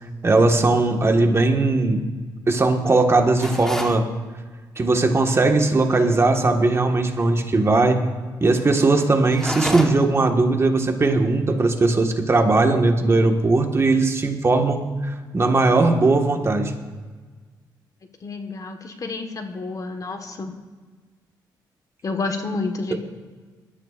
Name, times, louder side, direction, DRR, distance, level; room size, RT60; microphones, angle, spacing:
voice 1, 0.2-2.0 2.5-4.1 4.8-8.0 8.4-16.7, right 3 dB, 30° right, 4 dB, 1.6 m, -19 dB
sound 1, 3.4-4.0 9.3-10.2, equal, 5° left, 1.3 m, -28 dB
voice 2, 18.2-20.5 22.0-23.0, left 3 dB, 45° left, 6 dB, 1.4 m, -29 dB
20.5 x 12.5 x 2.5 m, 1.4 s
cardioid pair, 80°, 8 cm